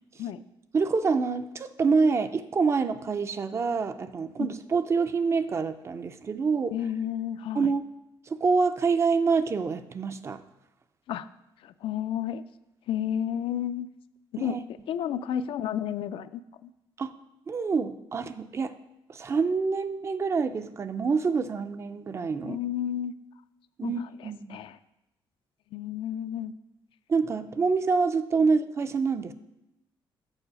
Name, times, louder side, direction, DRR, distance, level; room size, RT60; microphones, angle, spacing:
voice 1, 0.7-6.7 7.5-7.8 8.3-10.4 14.4-14.6 17.0-17.1 17.5-18.7 19.1-22.6 23.8-24.6 27.1-29.3, right 4 dB, 30° right, 11 dB, 0.4 m, -26 dB
voice 2, 6.7-7.7 11.1-11.3 11.6-12.4 12.9-13.9 14.3-14.6 14.9-16.7 22.4-23.1 23.8-24.8 25.7-26.5, left 10 dB, 70° left, 12 dB, 0.4 m, -32 dB
7.0 x 4.7 x 6.8 m, 0.88 s
cardioid pair, 155°, 9 cm